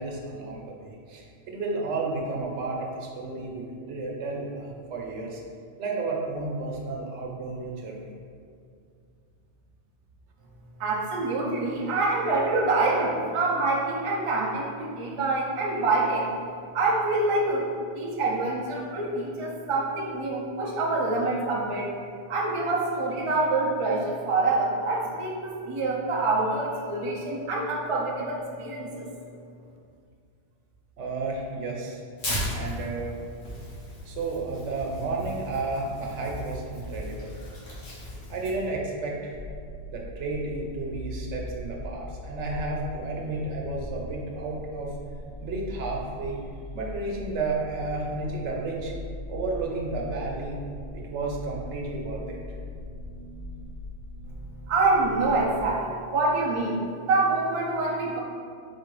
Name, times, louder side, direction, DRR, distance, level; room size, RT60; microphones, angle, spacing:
voice 1, 0.0-5.4 5.8-8.1 31.0-32.0 32.5-33.1 34.0-37.4 38.3-39.4 39.9-44.9 45.4-46.4 46.7-48.9 49.3-50.6 50.9-52.4, right 3 dB, 90° right, -1 dB, 1.0 m, -32 dB
voice 2, 10.8-16.3 16.7-17.7 17.9-21.9 22.3-29.1 54.7-58.2, right 3 dB, 35° right, -3 dB, 0.5 m, -26 dB
Tearing, 32.2-38.7, left 1 dB, 70° left, 1.3 m, -36 dB
sound 1, 39.3-55.7, left 1 dB, 50° left, 0.3 m, -40 dB
4.1 x 2.5 x 4.7 m, 2.3 s
omnidirectional pair, 1.2 m